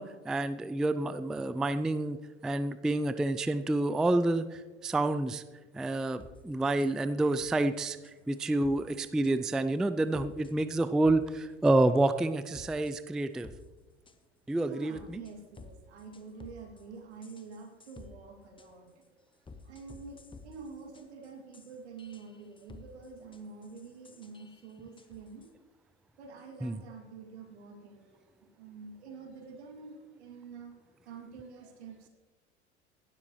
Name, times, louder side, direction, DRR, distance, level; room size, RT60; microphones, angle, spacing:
voice 1, 0.0-2.2 2.4-5.4 5.7-8.0 8.3-13.5 14.5-15.2 26.6-26.8, right 2 dB, ahead, 13 dB, 0.3 m, -28 dB
sound 1, 6.0-6.4 6.8-6.9 7.4-7.6 8.0-8.8 9.2-9.6 10.1-11.2 11.6-12.0 12.4-13.6 14.1-14.2 14.8-16.8 17.2-18.1 18.6-18.7 19.0-19.1 19.5-25.5, left 4 dB, 15° left, 1.1 m, -52 dB
voice 2, 14.5-19.0 19.6-25.5 26.2-30.7 31.0-32.1, right 5 dB, 75° right, 3 dB, 2.6 m, -47 dB
17.0 x 12.0 x 3.1 m, 1.3 s
hypercardioid pair, 75°, 33 cm